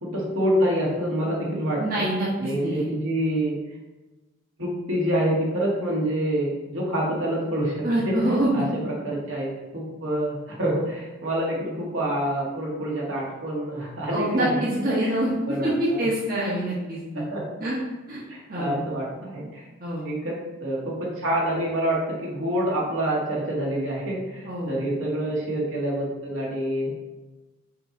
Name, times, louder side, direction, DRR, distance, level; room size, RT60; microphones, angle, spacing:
voice 1, 0.0-2.1 2.4-3.6 4.6-8.2 8.5-8.6 9.0-14.6 15.0-15.1 15.5-16.0 17.1-17.4 18.3-19.6 20.0-26.9, right 1 dB, 65° right, -4 dB, 1.8 m, -27 dB
voice 2, 1.5-2.9 7.8-8.5 14.1-15.3 15.6-17.2 17.6-17.8 18.1-18.2 18.5-18.8 19.8-20.0 24.4-24.7, right 1 dB, 45° right, -7 dB, 1.3 m, -26 dB
5.8 x 4.6 x 4.0 m, 1.2 s
head